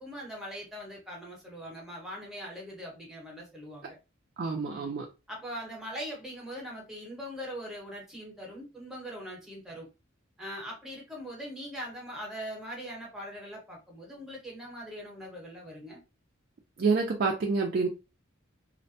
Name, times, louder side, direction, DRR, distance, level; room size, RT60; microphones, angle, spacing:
voice 1, 0.0-4.0 4.7-5.0 5.3-9.9 10.4-16.0, equal, ahead, 1.0 m, -41 dB
voice 2, 4.4-5.1 16.8-17.9, right 4 dB, 50° right, 0.4 m, -27 dB
2.5 x 2.1 x 2.6 m
head